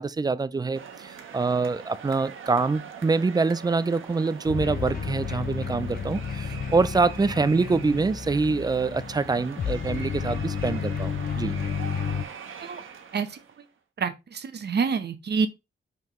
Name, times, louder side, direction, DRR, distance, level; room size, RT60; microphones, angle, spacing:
voice 1, 0.0-11.6, right 4 dB, 20° right, 0.4 m, -25 dB
sound 1, 0.7-13.7, right 6 dB, 85° right, 1.2 m, -43 dB
sound 2, 4.5-12.2, left 6 dB, 45° left, 0.6 m, -32 dB
voice 2, 14.0-15.5, right 5 dB, 55° right, 0.9 m, -27 dB
5.6 x 5.5 x 3.1 m
wide cardioid pair, 160°, 20 cm